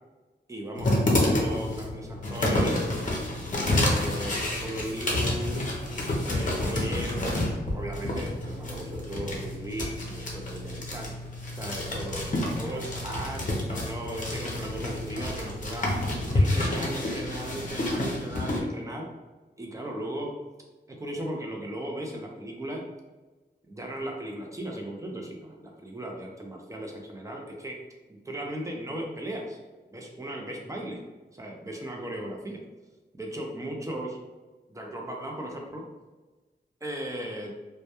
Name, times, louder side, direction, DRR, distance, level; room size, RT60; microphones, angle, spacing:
voice 1, 0.5-2.9 3.5-5.6 6.3-11.2 11.5-15.9 16.3-19.1 19.6-20.4 20.9-22.9 23.7-27.8 28.1-29.6 29.9-31.0 31.3-32.6 33.2-34.2 34.7-35.9 36.8-37.5, right 1 dB, 15° right, 0 dB, 0.4 m, -37 dB
sound 1, 0.8-18.6, left 1 dB, 45° left, 0.6 m, -29 dB
2.1 x 2.1 x 2.8 m, 1.2 s
wide cardioid pair, 100°, 18 cm